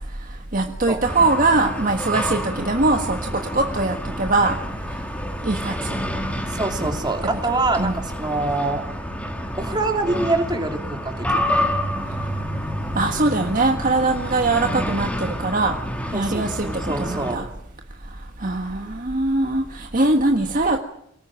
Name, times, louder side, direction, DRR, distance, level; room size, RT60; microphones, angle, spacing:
voice 1, 0.2-4.6 5.4-6.0 7.2-7.3 7.8-8.0 13.0-15.8 16.1-17.5 18.4-20.8, right 2 dB, 45° right, 4 dB, 1.6 m, -22 dB
sound 1, 1.0-17.3, equal, 5° left, 3.3 m, -28 dB
voice 2, 6.5-8.8 9.6-11.4 16.1-17.4, right 2 dB, 20° right, 4 dB, 3.2 m, -25 dB
24.0 x 19.0 x 9.0 m, 0.75 s
head